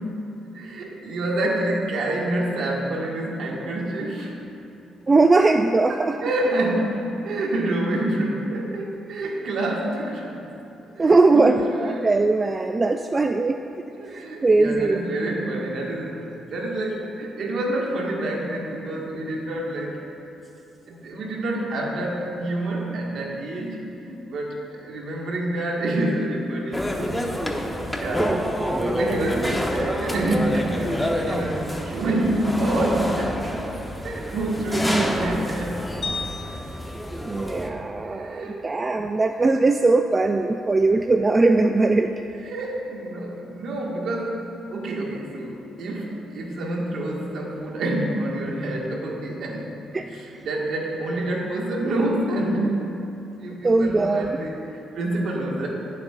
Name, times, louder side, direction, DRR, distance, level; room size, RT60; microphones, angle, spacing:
voice 1, 0.5-4.3 5.9-10.5 11.0-12.1 12.4-12.5 14.0-20.0 20.9-27.2 27.9-28.4 28.8-33.5 34.0-35.9 38.0-38.7 42.4-49.8 50.1-53.0 53.4-55.7, right 1 dB, 70° right, -2 dB, 1.7 m, -27 dB
voice 2, 5.1-6.1 11.0-13.6 14.4-15.0 28.2-28.4 28.6-29.1 34.8-35.1 37.2-42.1 49.9-50.1 53.6-54.4, right 3 dB, 25° right, 6 dB, 0.3 m, -20 dB
sound 1, 26.7-37.7, equal, 5° left, 0.9 m, -28 dB
sound 2, 36.0-38.4, left 3 dB, 45° left, 1.0 m, -36 dB
18.0 x 7.5 x 2.5 m, 2.8 s
cardioid pair, 90°, 0 cm